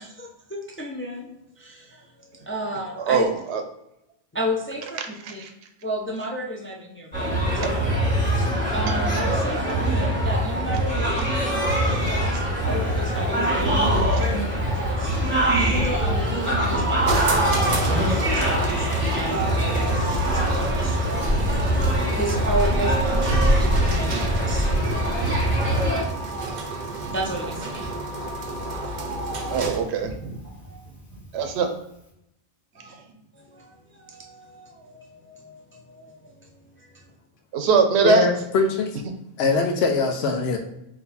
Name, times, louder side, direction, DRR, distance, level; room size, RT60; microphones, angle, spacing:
voice 1, 0.0-3.3 4.3-5.0 5.3-5.4 5.8-7.7 8.3-14.3 14.7-15.1 15.5-18.9 19.2-25.5 27.0-28.4 32.8-32.9 33.3-37.0, right 1 dB, 20° left, -1 dB, 0.3 m, -33 dB
voice 2, 3.1-3.6 5.4-5.5 29.5-30.4 31.3-31.7 37.5-38.3, right 5 dB, 90° right, 6 dB, 0.9 m, -21 dB
sound 1, 7.1-26.0, right 1 dB, 10° right, 1.5 m, -23 dB
Bird, 12.6-31.7 32.1-32.2, right 1 dB, 60° left, 1.5 m, -37 dB
sound 2, 17.0-30.0, right 3 dB, 55° right, 0.6 m, -31 dB
voice 3, 38.0-38.9 39.4-40.6, left 4 dB, 85° left, 3 dB, 0.9 m, -22 dB
3.8 x 2.7 x 4.1 m, 0.81 s
omnidirectional pair, 1.1 m